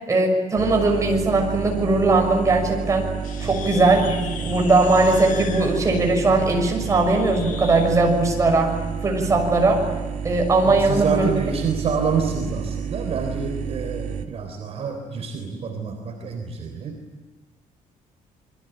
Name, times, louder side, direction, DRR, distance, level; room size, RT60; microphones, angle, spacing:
voice 1, 0.1-3.0 3.4-9.8 10.2-11.3, right 2 dB, 20° right, 2 dB, 6.3 m, -19 dB
sound 1, 0.6-14.3, right 7 dB, 65° right, 2.4 m, -30 dB
sound 2, 3.2-7.9, left 7 dB, 70° left, 4.8 m, -38 dB
voice 2, 10.6-17.0, right 5 dB, 45° right, 3 dB, 3.7 m, -27 dB
28.0 x 22.5 x 9.1 m, 1.3 s
cardioid pair, 170°, 14 cm